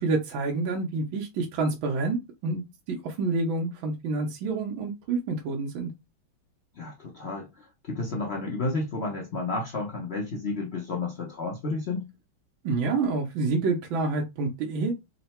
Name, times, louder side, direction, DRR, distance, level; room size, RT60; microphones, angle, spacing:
voice 1, 0.0-5.9 12.6-14.9, right 3 dB, 75° right, 1.5 m, -28 dB
voice 2, 6.7-12.1, left 3 dB, 85° left, 0.5 m, -31 dB
3.8 x 2.1 x 4.2 m
omnidirectional pair, 2.2 m